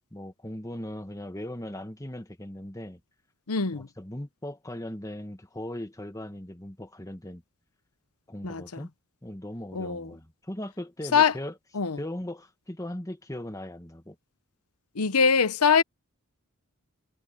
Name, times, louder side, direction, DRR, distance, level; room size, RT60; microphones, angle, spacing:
voice 1, 0.1-3.0 3.7-7.4 8.3-8.9 9.2-11.6 12.0-14.2, left 1 dB, 15° left, 1.4 m, -38 dB
voice 2, 3.5-3.9 8.4-8.8 9.7-10.1 11.1-11.3 11.8-12.0 15.0-15.8, left 6 dB, 85° left, 0.9 m, -23 dB
head